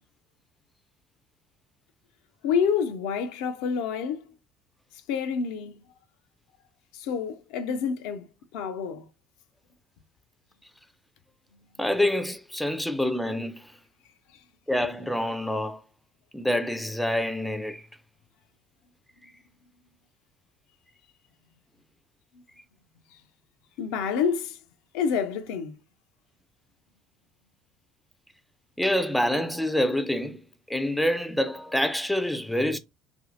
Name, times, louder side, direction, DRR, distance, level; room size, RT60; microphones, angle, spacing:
voice 1, 2.4-4.2 5.1-5.7 6.9-8.3 8.5-9.1 23.8-24.6 24.9-25.8, left 6 dB, 70° left, 0.4 m, -28 dB
voice 2, 11.8-13.7 14.7-15.8 16.3-17.8 28.8-30.4 30.7-32.8, left 1 dB, 5° left, 0.4 m, -26 dB
2.7 x 2.6 x 2.6 m
figure-of-eight pair, 60°, 0 cm